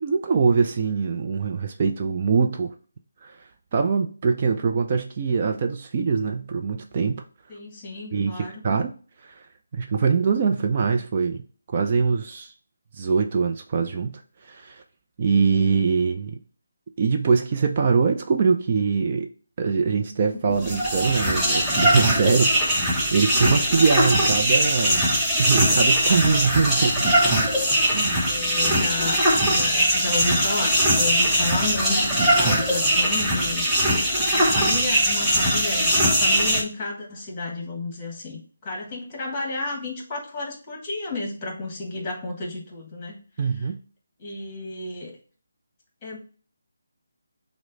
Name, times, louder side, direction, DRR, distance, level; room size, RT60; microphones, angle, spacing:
voice 1, 0.0-2.7 3.2-3.4 3.7-7.2 8.1-8.9 9.2-9.4 9.7-11.4 11.7-12.5 12.9-14.8 15.2-16.4 17.0-19.3 19.6-25.0 25.4-27.4 27.9-28.2 43.4-43.8, right 5 dB, 40° right, 4 dB, 0.5 m, -23 dB
voice 2, 7.5-8.6 20.5-20.9 28.1-33.7 34.3-43.2 43.4-43.7 44.2-45.2 46.0-46.2, left 3 dB, 25° left, 0 dB, 1.3 m, -32 dB
sound 1, 20.5-36.6, equal, 5° right, 0.9 m, -21 dB
6.1 x 2.1 x 3.8 m, 0.39 s
figure-of-eight pair, 160°, 0 cm